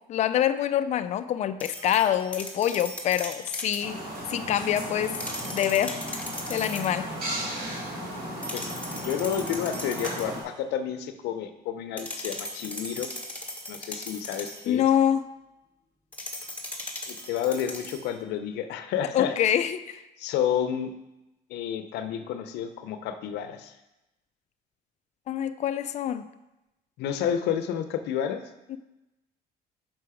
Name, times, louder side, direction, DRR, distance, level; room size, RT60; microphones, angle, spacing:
voice 1, 0.1-4.0 4.3-5.1 5.5-6.2 6.5-7.1 14.7-15.2 19.1-20.0 25.3-26.2 28.7-28.8, left 10 dB, 45° left, 10 dB, 0.4 m, -25 dB
sound 1, 1.6-3.9 5.0-7.0 8.4-10.4 12.0-14.7 16.1-18.1, left 1 dB, 10° left, 1.3 m, -38 dB
sound 2, 3.8-10.4, equal, 60° right, 2.3 m, -35 dB
voice 2, 8.5-13.1 13.7-14.8 17.1-19.5 20.2-20.9 21.5-23.7 27.0-28.4, left 9 dB, 85° left, 9 dB, 0.6 m, -30 dB
6.1 x 5.7 x 4.9 m, 0.96 s
cardioid pair, 110°, 17 cm